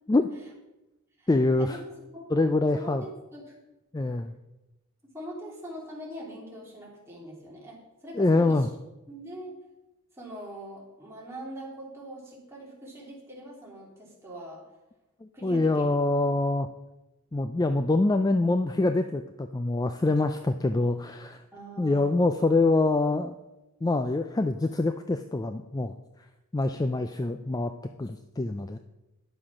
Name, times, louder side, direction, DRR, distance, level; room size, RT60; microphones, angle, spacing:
voice 1, 1.3-1.8 2.3-3.0 3.9-4.3 8.1-8.7 15.2-16.7 17.3-21.4 21.8-23.4 23.8-25.9 26.5-27.7 28.0-28.8, left 2 dB, 15° left, 8 dB, 0.3 m, -25 dB
voice 2, 2.7-3.5 5.0-8.7 9.1-9.6 10.1-14.7 15.3-15.9 21.5-22.2, right 1 dB, 10° right, -4 dB, 2.9 m, -42 dB
10.5 x 7.5 x 6.0 m, 1.0 s
head